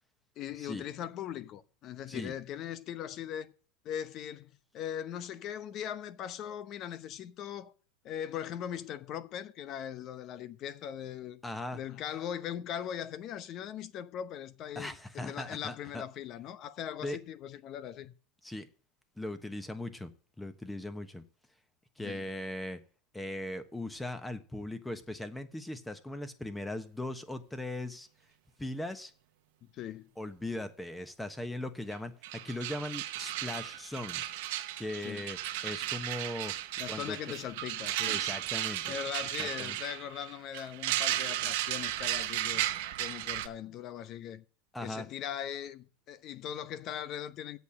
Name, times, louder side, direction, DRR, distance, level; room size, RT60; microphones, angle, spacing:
voice 1, 0.4-3.5 3.8-7.7 8.0-11.4 11.7-18.1 22.0-22.2 29.6-30.1 35.0-35.3 36.8-38.2 38.8-42.7 43.0-44.4 44.8-47.6, left 10 dB, 45° left, 0.8 m, -40 dB
voice 2, 11.4-11.8 14.7-16.0 17.0-17.2 18.4-18.7 19.2-20.1 20.4-21.2 22.0-22.8 23.1-28.1 28.6-29.1 30.2-34.2 34.8-36.5 36.9-37.3 38.0-39.0 39.4-39.8 44.7-45.0, left 1 dB, 5° left, 1.2 m, -39 dB
sound 1, 31.9-32.0 32.2-43.5, right 14 dB, 70° right, 0.9 m, -35 dB
8.2 x 6.6 x 7.8 m
hypercardioid pair, 110°, 0 cm